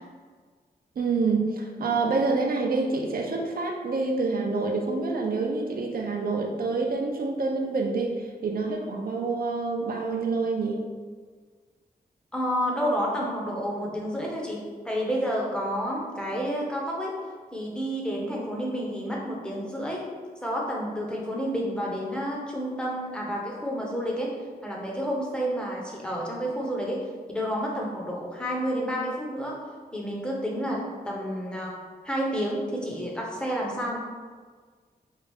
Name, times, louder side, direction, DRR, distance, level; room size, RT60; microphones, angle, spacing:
voice 1, 1.0-10.8, right 3 dB, 65° right, 1 dB, 0.5 m, -27 dB
voice 2, 12.3-17.2 17.5-20.1 20.4-24.4 24.6-29.6 29.9-31.7 32.0-34.0, equal, 5° left, -3 dB, 0.7 m, -30 dB
4.6 x 2.3 x 3.5 m, 1.5 s
wide cardioid pair, 125°, 17 cm